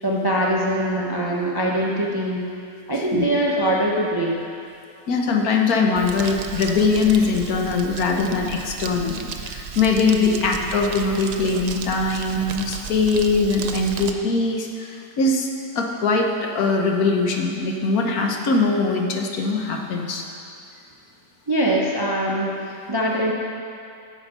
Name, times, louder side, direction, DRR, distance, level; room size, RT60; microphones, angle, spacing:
voice 1, 0.0-2.5 2.9-4.4 10.2-10.4 21.5-23.3, right 1 dB, 25° right, -2 dB, 0.5 m, -23 dB
voice 2, 2.9-3.2 5.1-15.5 15.7-20.2, left 4 dB, 65° left, 2 dB, 1.3 m, -21 dB
Crumpling crinkling, 6.0-14.1, right 6 dB, 75° right, 1.2 m, -34 dB
10.5 x 7.1 x 5.5 m, 2.5 s
omnidirectional pair, 1.7 m